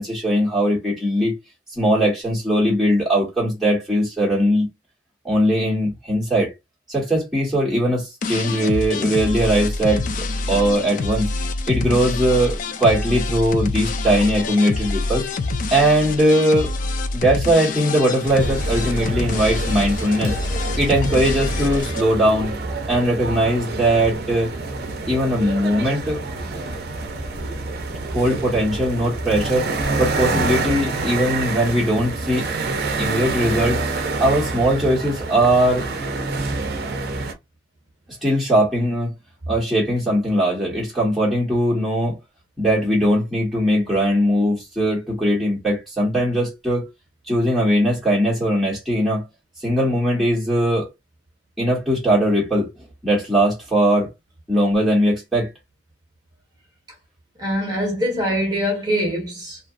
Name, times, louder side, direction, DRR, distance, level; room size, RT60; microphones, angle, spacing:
voice 1, 0.0-1.3 1.8-4.7 5.2-6.5 6.9-10.0 10.5-11.3 11.7-15.2 15.7-16.7 17.1-20.4 20.8-22.5 22.9-24.5 25.1-26.2 28.1-29.7 30.0-32.5 33.0-33.8 34.2-35.9 38.2-39.1 39.5-42.2 42.6-46.9 47.3-49.2 49.6-50.9 51.6-52.7 53.0-54.1 54.5-55.5, equal, ahead, 1.1 m, -20 dB
sound 1, 8.2-22.0, left 3 dB, 45° left, 0.3 m, -26 dB
sound 2, 18.2-37.3, right 3 dB, 60° right, 0.5 m, -27 dB
voice 2, 57.4-59.6, equal, 25° right, 1.2 m, -23 dB
2.7 x 2.3 x 2.4 m
head